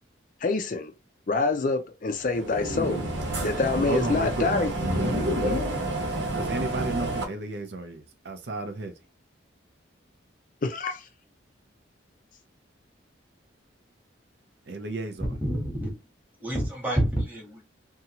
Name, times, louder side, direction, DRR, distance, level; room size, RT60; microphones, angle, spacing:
voice 1, 0.4-0.9 1.3-3.1 3.4-4.7 5.3-5.6 10.6-11.1, left 3 dB, 40° left, 0.4 m, -26 dB
sound 1, 2.2-7.2, right 1 dB, 75° right, 1.0 m, -29 dB
voice 2, 3.9-4.7 6.3-8.9 14.7-15.4, right 2 dB, 60° right, 0.5 m, -32 dB
voice 3, 15.4-15.9 16.4-17.7, right 1 dB, 10° right, 1.1 m, -28 dB
2.7 x 2.3 x 2.9 m
head